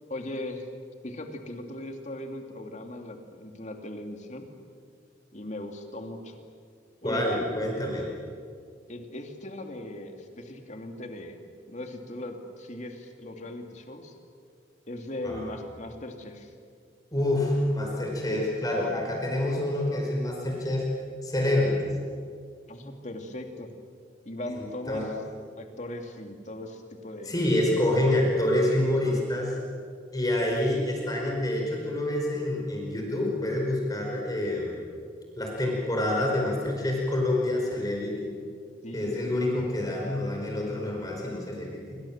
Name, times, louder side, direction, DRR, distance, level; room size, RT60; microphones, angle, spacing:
voice 1, 0.1-0.7 1.0-4.5 5.3-6.4 7.0-7.5 8.9-11.4 11.7-14.1 14.9-16.5 22.7-23.7 24.2-25.1 25.6-27.3 38.8-39.3, left 1 dB, 40° left, 4 dB, 2.8 m, -39 dB
voice 2, 7.0-8.1 15.2-15.4 17.1-20.9 21.2-21.9 24.5-25.1 27.2-29.6 30.1-34.8 35.4-38.3 38.9-42.0, left 1 dB, 20° left, -1 dB, 5.0 m, -27 dB
28.0 x 25.0 x 7.5 m, 2.2 s
head